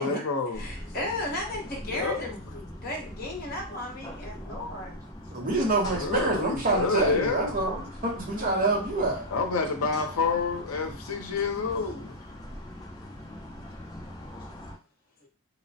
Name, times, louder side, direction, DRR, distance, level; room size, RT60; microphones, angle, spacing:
voice 1, 0.0-0.7 1.9-2.2 5.9-7.5 9.3-12.2, left 4 dB, 70° left, 0.5 m, -28 dB
voice 2, 0.5-5.0 8.3-8.8, left 1 dB, 40° left, 0.8 m, -35 dB
sound 1, 0.5-14.8, left 1 dB, 15° left, 0.4 m, -41 dB
voice 3, 5.3-9.3, right 2 dB, 35° right, 0.7 m, -27 dB
2.8 x 2.0 x 2.7 m
head